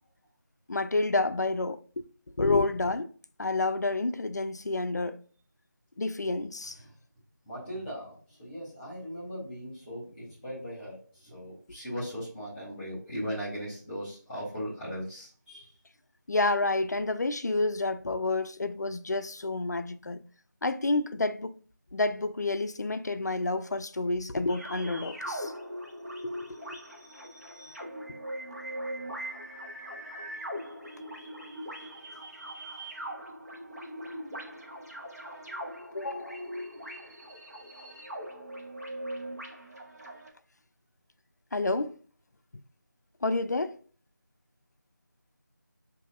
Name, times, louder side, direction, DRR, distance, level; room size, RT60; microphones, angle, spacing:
voice 1, 0.7-2.1 2.4-3.1 3.4-5.2 6.0-6.8 16.3-20.2 20.6-21.6 21.9-25.5 26.2-26.3 26.6-26.8 35.9-36.5 41.5-42.0 43.2-43.8, left 2 dB, 60° left, 0.4 m, -29 dB
voice 2, 7.4-15.7, equal, 10° left, 1.5 m, -38 dB
sound 1, 24.5-40.3, equal, 55° right, 1.1 m, -40 dB
6.1 x 2.7 x 2.4 m
figure-of-eight pair, 170°, 10 cm